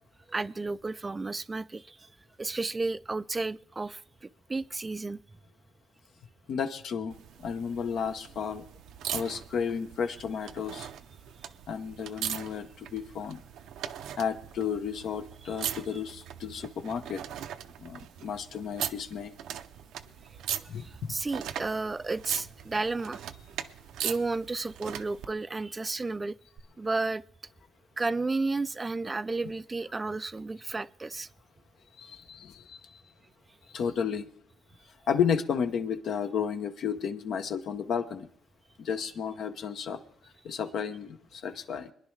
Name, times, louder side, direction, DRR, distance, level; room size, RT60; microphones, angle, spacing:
voice 1, 0.3-2.0 2.4-4.0 4.5-5.2 20.6-23.2 24.0-26.3 26.8-27.2 28.0-31.3, right 3 dB, 25° right, 0.4 m, -32 dB
voice 2, 6.5-7.1 7.4-8.6 9.1-10.9 11.7-13.4 14.2-17.2 17.8-19.3 20.7-21.1 32.0-33.0 33.7-34.3 35.1-38.3 38.8-40.0 40.4-41.9, left 7 dB, 70° left, 0.8 m, -32 dB
sound 1, 7.1-25.3 26.6-26.7, right 10 dB, 80° right, 0.5 m, -40 dB
23.0 x 10.5 x 3.2 m
cardioid pair, 90°, 0 cm